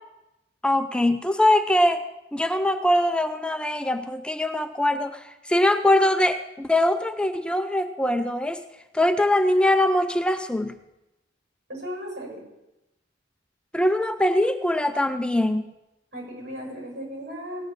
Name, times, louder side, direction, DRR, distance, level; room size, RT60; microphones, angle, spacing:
voice 1, 0.6-2.0 2.3-8.6 8.9-10.8 13.7-15.7, left 1 dB, 5° left, 8 dB, 0.5 m, -22 dB
voice 2, 11.7-12.4 16.1-17.7, equal, 75° right, 0 dB, 6.8 m, -36 dB
17.5 x 5.9 x 8.8 m, 0.94 s
head